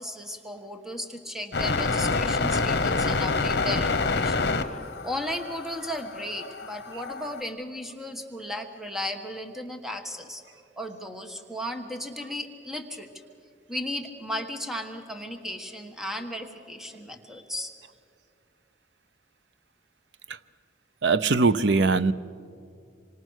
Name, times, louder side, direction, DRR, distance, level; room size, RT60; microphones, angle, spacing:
voice 1, 0.0-4.5 5.0-10.4 10.8-13.1 13.7-17.7, left 1 dB, ahead, 1.4 m, -35 dB
sound 1, 1.5-7.4, left 3 dB, 60° left, 1.2 m, -27 dB
voice 2, 21.0-22.1, right 4 dB, 75° right, 0.7 m, -21 dB
27.5 x 25.0 x 6.5 m
head